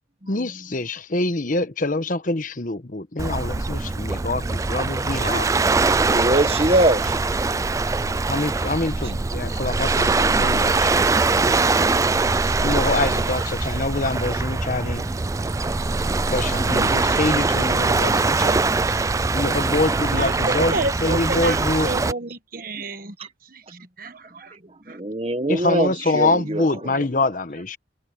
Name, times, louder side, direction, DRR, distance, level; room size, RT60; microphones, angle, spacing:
voice 1, 0.3-5.5 8.3-10.9 12.6-15.1 16.3-21.9 25.5-27.8, left 2 dB, 45° left, 1.1 m, -25 dB
Waves surf, 3.2-22.1, right 3 dB, 15° right, 0.3 m, -22 dB
voice 2, 6.0-7.2 24.9-26.6, right 1 dB, 35° right, 1.3 m, -22 dB
voice 3, 20.1-23.1 23.5-24.5 24.9-25.0, right 2 dB, 50° right, 1.4 m, -30 dB
head